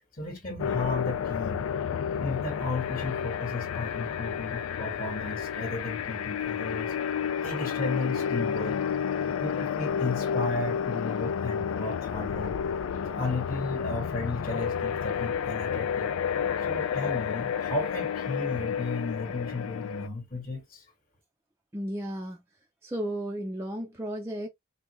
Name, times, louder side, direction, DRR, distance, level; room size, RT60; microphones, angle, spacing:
voice 1, 0.1-1.7 2.1-6.9 7.4-8.8 9.3-12.6 13.1-16.1 16.6-20.8, left 2 dB, 35° left, 1.1 m, -34 dB
sound 1, 0.6-20.1, left 7 dB, 80° left, 0.3 m, -31 dB
voice 2, 21.7-22.4 22.8-24.5, right 1 dB, 15° right, 0.4 m, -34 dB
3.5 x 2.3 x 3.0 m
head